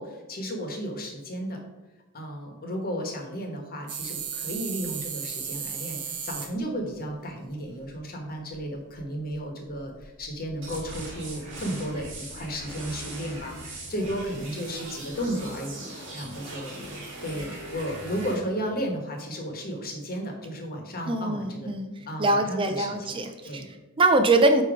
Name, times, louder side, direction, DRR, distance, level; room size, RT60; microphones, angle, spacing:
voice 1, 0.0-1.6 2.1-16.7 17.2-21.7 22.1-23.1 23.4-23.7, equal, 45° left, 2 dB, 1.3 m, -34 dB
sound 1, 3.9-6.5 8.5-8.6 8.9-9.0 9.3-9.4 9.8-11.1 11.5-12.9 13.3-13.4 14.0-14.4 14.8-14.9, right 7 dB, 80° right, 1.0 m, -36 dB
sound 2, 10.6-18.4, right 1 dB, 60° right, 2.1 m, -40 dB
voice 2, 21.1-24.6, right 2 dB, 25° right, 6 dB, 0.4 m, -23 dB
8.4 x 3.0 x 4.9 m, 1.1 s
head